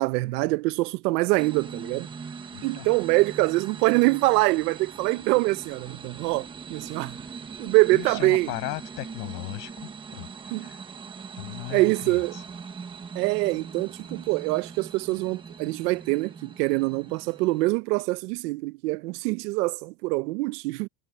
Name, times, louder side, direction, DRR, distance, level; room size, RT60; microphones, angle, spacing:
voice 1, 0.0-2.1 2.6-7.2 7.6-8.5 10.5-10.7 11.7-12.4 13.1-20.9, right 22 dB, 80° right, 1.0 m, -24 dB
sound 1, 1.4-17.7, right 5 dB, 10° right, 0.9 m, -41 dB
voice 2, 2.5-2.9 7.9-10.8 11.4-12.4, left 24 dB, 75° left, 6.3 m, -37 dB
cardioid pair, 180°, 47 cm